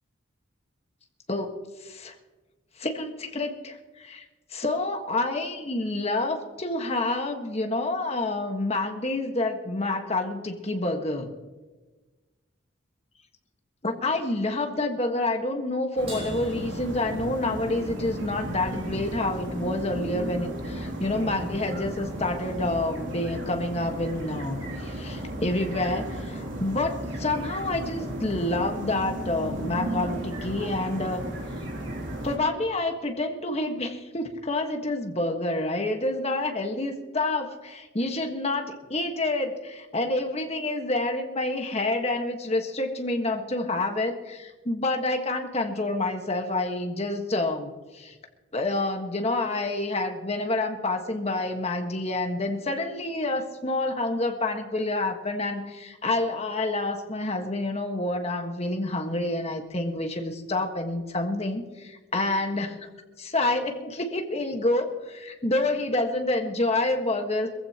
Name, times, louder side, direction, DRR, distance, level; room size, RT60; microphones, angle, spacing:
voice 1, 1.3-2.1 2.8-4.2 4.5-11.3 13.8-31.2 32.2-48.1 48.5-62.7 63.2-67.5, left 2 dB, 30° left, 4 dB, 1.5 m, -28 dB
sound 1, 16.0-32.4, right 1 dB, 75° right, 2.8 m, -34 dB
Crash cymbal, 16.1-17.8, equal, 30° right, 5.8 m, -44 dB
22.0 x 15.0 x 3.0 m, 1.3 s
head